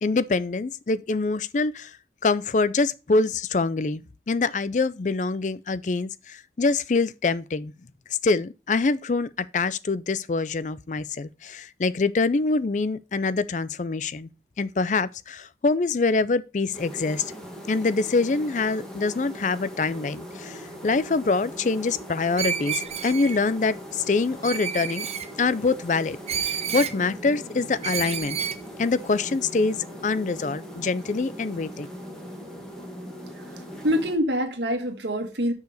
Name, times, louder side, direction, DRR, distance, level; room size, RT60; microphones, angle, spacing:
voice 1, 0.0-2.0 2.2-7.7 8.2-14.3 14.6-17.3 17.7-25.1 25.4-28.5 28.8-31.9, left 3 dB, 45° left, 0.4 m, -25 dB
sound 1, 16.7-34.2, equal, 5° left, 1.8 m, -40 dB
Screech, 22.4-23.4 24.4-25.3 26.3-27.0 27.8-28.6, right 8 dB, 35° right, 0.7 m, -29 dB
voice 2, 33.3-35.5, equal, 85° right, 1.7 m, -26 dB
6.6 x 4.9 x 6.5 m
head